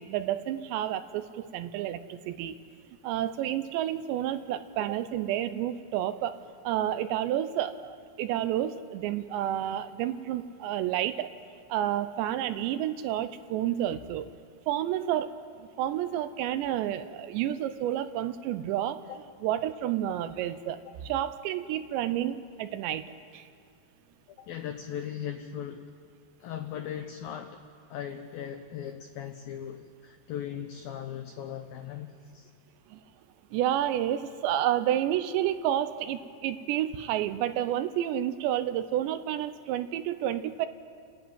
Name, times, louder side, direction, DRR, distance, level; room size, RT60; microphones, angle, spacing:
voice 1, 0.0-2.6 3.0-6.4 6.6-11.3 11.7-14.3 14.7-15.3 15.6-19.0 19.4-23.0 23.3-23.4 32.9-33.0 33.5-40.7, right 11 dB, 80° right, 11 dB, 2.9 m, -30 dB
voice 2, 24.4-25.9 26.4-27.6 27.9-32.5, left 9 dB, 85° left, 6 dB, 2.0 m, -38 dB
30.0 x 11.0 x 9.2 m, 2.2 s
omnidirectional pair, 5.2 m